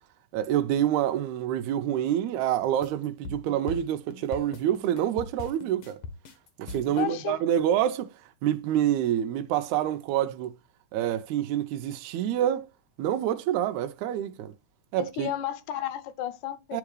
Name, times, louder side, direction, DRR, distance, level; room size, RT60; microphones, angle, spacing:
voice 1, 0.3-6.0 6.6-8.1 8.4-10.5 10.9-12.7 13.0-14.5 14.9-15.3 16.7-16.8, right 11 dB, 90° right, 2.0 m, -27 dB
sound 1, 2.8-7.0, left 3 dB, 65° left, 1.4 m, -40 dB
voice 2, 7.0-7.4 15.0-16.8, left 12 dB, 85° left, 2.1 m, -33 dB
10.5 x 3.5 x 3.2 m
omnidirectional pair, 3.4 m